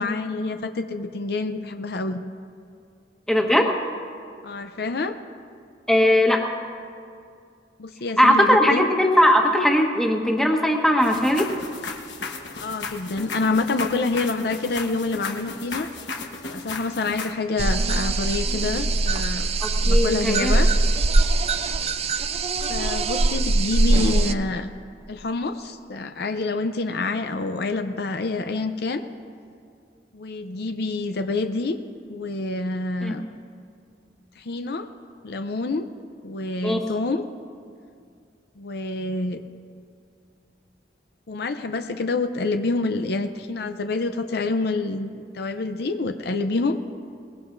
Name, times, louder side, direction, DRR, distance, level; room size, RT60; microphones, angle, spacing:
voice 1, 0.0-2.2 4.4-5.2 7.8-8.8 12.6-15.9 16.5-19.5 19.8-20.7 22.7-24.7 25.1-29.0 30.1-31.8 32.1-33.2 34.4-34.9 35.2-35.9 36.2-37.2 38.6-39.4 41.3-46.8, left 3 dB, 65° left, 7 dB, 0.6 m, -27 dB
voice 2, 3.3-3.7 5.9-6.5 8.2-11.5 19.6-20.5 33.0-33.2 36.6-36.9, left 1 dB, 5° left, 0 dB, 1.3 m, -19 dB
sound 1, 11.0-17.3, left 4 dB, 85° left, 1.2 m, -35 dB
sound 2, 17.6-24.3, right 2 dB, 35° right, 0.5 m, -22 dB
22.5 x 19.5 x 2.6 m, 2.3 s
head